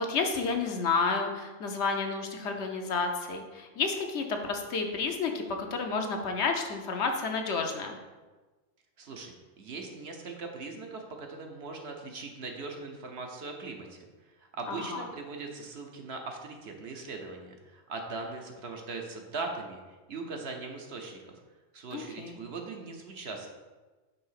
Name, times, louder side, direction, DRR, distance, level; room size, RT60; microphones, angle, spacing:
voice 1, 0.0-8.0 14.7-15.1 21.9-22.4, left 4 dB, 65° left, 4 dB, 0.9 m, -31 dB
voice 2, 9.0-21.3 21.7-23.5, right 3 dB, 60° right, 2 dB, 1.0 m, -40 dB
5.6 x 3.5 x 5.6 m, 1.3 s
omnidirectional pair, 1.3 m